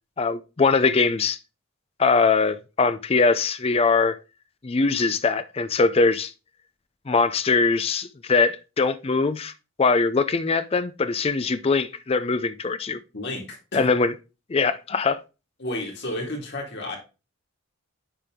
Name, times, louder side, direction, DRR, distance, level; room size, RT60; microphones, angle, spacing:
voice 1, 0.2-1.4 2.0-4.2 4.6-6.3 7.1-9.5 9.8-13.0 13.7-14.1 14.5-15.2, left 4 dB, 25° left, 0.4 m, -22 dB
voice 2, 13.1-13.9 15.6-17.0, left 1 dB, 50° left, 2.2 m, -32 dB
10.0 x 3.4 x 3.6 m
head